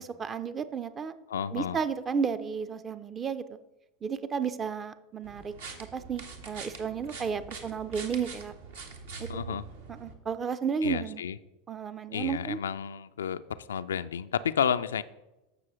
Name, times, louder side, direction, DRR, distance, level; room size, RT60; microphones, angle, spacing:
voice 1, 0.0-1.1 1.5-3.6 4.0-5.5 5.9-8.5 9.2-9.3 9.9-11.2 11.7-12.6, right 6 dB, 25° right, 13 dB, 0.5 m, -32 dB
voice 2, 1.3-1.8 9.3-9.6 10.8-11.4 12.1-15.0, left 8 dB, 70° left, 12 dB, 0.3 m, -31 dB
sound 1, 5.2-10.1, right 5 dB, 65° right, 1.2 m, -44 dB
14.5 x 6.0 x 3.0 m, 0.99 s
figure-of-eight pair, 80°, 0 cm